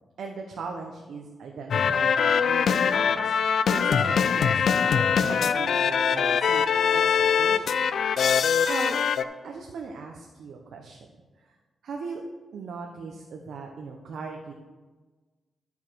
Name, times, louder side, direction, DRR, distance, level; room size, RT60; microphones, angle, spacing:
voice 1, 0.2-7.1 7.4-7.9 8.7-9.0 9.4-11.0 11.4-11.6 11.8-12.2 12.5-14.5, right 4 dB, 80° right, 1 dB, 0.9 m, -39 dB
sound 1, 1.7-9.2, left 7 dB, 70° left, 0.4 m, -23 dB
12.0 x 5.7 x 4.6 m, 1.3 s
cardioid pair, 105°, 0 cm